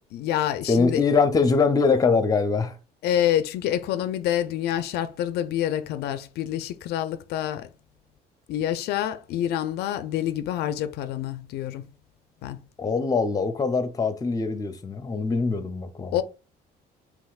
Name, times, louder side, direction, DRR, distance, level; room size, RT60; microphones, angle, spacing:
voice 1, 0.1-1.0 3.0-7.7 8.5-11.9 12.4-12.6 16.1-16.2, left 11 dB, 75° left, 0.4 m, -27 dB
voice 2, 0.7-2.7 12.8-16.2, left 4 dB, 20° left, 0.6 m, -23 dB
5.6 x 3.0 x 2.3 m
cardioid pair, 110°, 17 cm